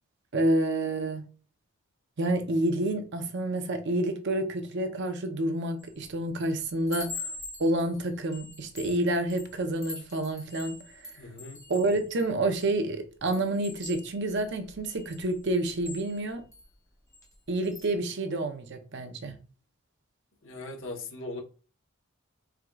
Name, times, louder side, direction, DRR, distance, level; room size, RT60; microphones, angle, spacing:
voice 1, 0.3-1.2 2.2-7.3 7.6-11.1 11.7-16.4 17.5-19.4, right 1 dB, 55° right, 0.6 m, -29 dB
Chime, 5.8-6.1 6.5-12.8 13.3-16.7 17.1-17.3 17.6-17.9, left 3 dB, 15° left, 0.9 m, -44 dB
voice 2, 11.2-11.6 20.4-21.4, left 2 dB, 60° left, 1.0 m, -39 dB
4.6 x 3.6 x 2.3 m
head